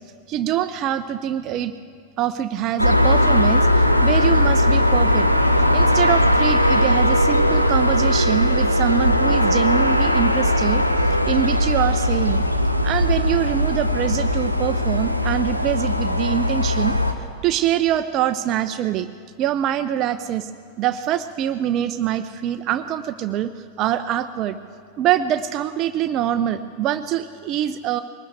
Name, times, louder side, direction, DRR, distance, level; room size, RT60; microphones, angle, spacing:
voice 1, 0.3-1.7 2.2-5.3 5.7-10.8 11.3-12.4 12.8-16.9 17.4-19.1 19.4-20.5 20.8-23.5 23.8-24.6 25.0-28.0, right 11 dB, 35° right, 10 dB, 0.7 m, -24 dB
sound 1, 2.8-17.1, left 1 dB, 90° left, 1.3 m, -19 dB
21.5 x 19.0 x 8.1 m, 2.2 s
figure-of-eight pair, 90°, 0 cm